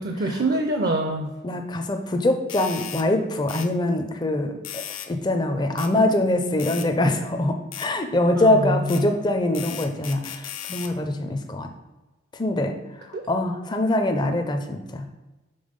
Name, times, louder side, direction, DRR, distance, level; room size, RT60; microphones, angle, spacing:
voice 1, 0.0-1.3 8.3-9.0 13.1-13.2, right 1 dB, 50° right, 4 dB, 0.5 m, -25 dB
voice 2, 1.4-11.7 12.3-15.1, left 1 dB, 20° left, 5 dB, 0.4 m, -24 dB
sound 1, 2.5-3.1 3.5-3.7 4.6-5.1 5.8-5.9 6.6-6.9 7.7-7.9 8.9-9.0 9.5-10.9, left 10 dB, 80° left, 0.6 m, -36 dB
5.4 x 3.7 x 5.1 m, 1.1 s
head